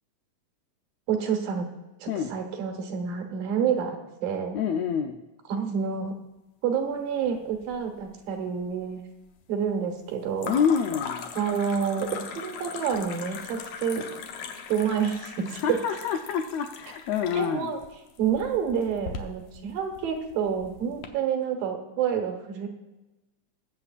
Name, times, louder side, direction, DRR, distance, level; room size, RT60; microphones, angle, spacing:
voice 1, 1.1-1.7 2.0-4.6 5.5-6.2 6.6-9.0 9.5-10.5 11.4-14.1 14.7-15.6 17.3-17.8 18.2-22.7, right 7 dB, 85° right, 4 dB, 3.0 m, -28 dB
voice 2, 4.5-5.2 10.4-11.3 15.4-17.7, left 7 dB, 85° left, 5 dB, 1.5 m, -27 dB
sound 1, 7.2-8.0 8.3-8.9 10.4-21.1, left 6 dB, 70° left, 1.8 m, -40 dB
22.0 x 7.6 x 2.4 m, 1.1 s
omnidirectional pair, 3.9 m